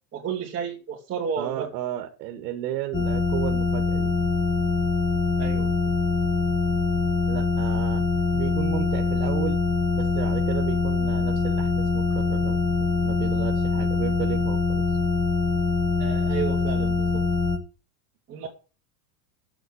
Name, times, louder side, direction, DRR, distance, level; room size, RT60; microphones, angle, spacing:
voice 1, 0.1-1.7 5.4-5.9 16.0-17.2 18.3-18.5, right 6 dB, 25° right, -3 dB, 2.8 m, -32 dB
voice 2, 1.4-4.1 7.3-8.1 8.3-9.6 10.0-12.6 13.0-14.8, right 12 dB, 70° right, 5 dB, 1.9 m, -33 dB
sound 1, 2.9-17.6, left 4 dB, 10° left, 1.5 m, -24 dB
8.3 x 7.9 x 7.9 m, 0.34 s
supercardioid pair, 150°, 48 cm